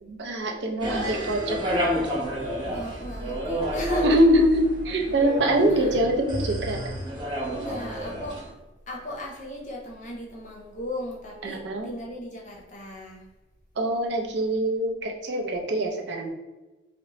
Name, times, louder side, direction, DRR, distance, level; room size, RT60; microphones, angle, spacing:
voice 1, 0.0-1.9 4.0-6.8 11.4-11.9 13.8-16.3, right 1 dB, 70° right, 2 dB, 0.5 m, -24 dB
sound 1, 0.8-8.5, equal, 25° right, 0.8 m, -30 dB
voice 2, 2.7-4.2 5.7-5.9 7.5-8.4 8.9-13.2, left 1 dB, 45° left, -2 dB, 0.6 m, -36 dB
2.9 x 2.1 x 2.7 m, 1.1 s
head